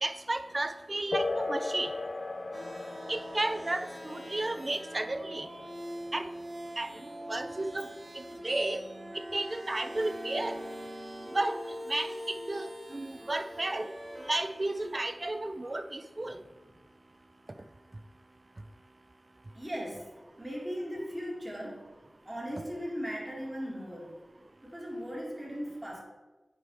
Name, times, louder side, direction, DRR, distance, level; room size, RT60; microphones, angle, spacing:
voice 1, 0.0-1.9 3.1-5.5 6.1-6.3 6.8-6.9 7.3-7.9 8.1-8.8 9.1-10.6 11.3-11.6 11.9-13.9 14.3-16.4, right 2 dB, 40° right, 9 dB, 0.4 m, -33 dB
sound 1, 1.1-9.1, left 3 dB, 50° left, 0.5 m, -38 dB
sound 2, 2.5-15.0, equal, 55° right, 2.2 m, -43 dB
voice 2, 19.5-20.1 20.4-21.9 22.3-24.1 24.6-26.0, equal, 20° right, -3 dB, 2.0 m, -38 dB
9.4 x 3.3 x 4.7 m, 1.2 s
wide cardioid pair, 80°, 0 cm